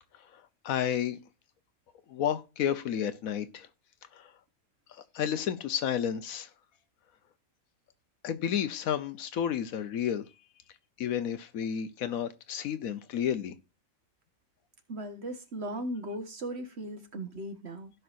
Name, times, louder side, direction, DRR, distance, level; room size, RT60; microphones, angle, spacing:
voice 1, 0.6-1.2 2.1-3.7 4.2-4.3 5.1-6.5 8.2-10.2 11.0-13.5, left 9 dB, 85° left, 1.2 m, -31 dB
voice 2, 14.9-17.9, right 1 dB, 50° right, 1.6 m, -37 dB
16.5 x 5.5 x 2.5 m
omnidirectional pair, 1.4 m